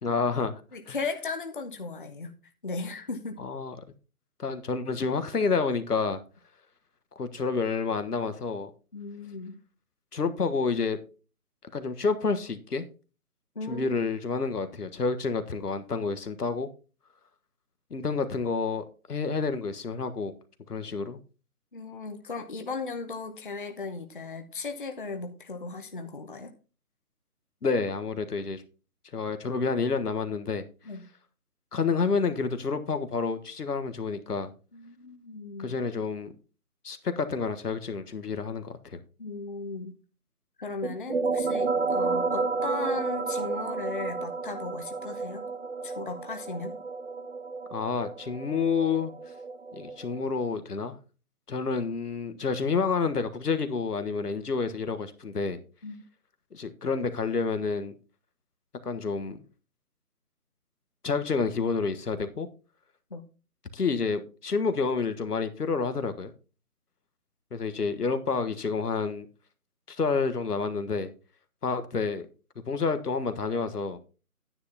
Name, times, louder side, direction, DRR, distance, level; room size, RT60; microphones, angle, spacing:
voice 1, 0.0-0.6 0.9-1.0 3.4-3.7 4.4-6.2 7.2-8.7 10.1-11.0 11.7-12.8 13.7-16.7 17.9-20.3 20.7-21.2 27.6-28.6 29.1-30.6 31.7-34.5 35.6-36.3 36.8-39.0 47.7-49.1 49.7-51.0 51.5-55.6 56.5-57.9 58.8-59.4 61.0-62.5 63.7-66.3 67.5-69.3 69.9-71.1 71.6-72.3 72.7-74.0, left 4 dB, 90° left, 1.5 m, -29 dB
voice 2, 0.7-2.4 2.6-3.4 8.9-9.6 13.6-13.9 21.7-26.5 30.9-31.1 34.7-35.8 39.2-40.0 40.6-45.5 45.8-46.8 55.8-56.0 63.1-63.3, left 4 dB, 35° left, 0.7 m, -37 dB
sound 1, 40.8-50.2, right 4 dB, 50° right, 0.5 m, -31 dB
10.5 x 9.6 x 2.9 m
hypercardioid pair, 170°, 45 cm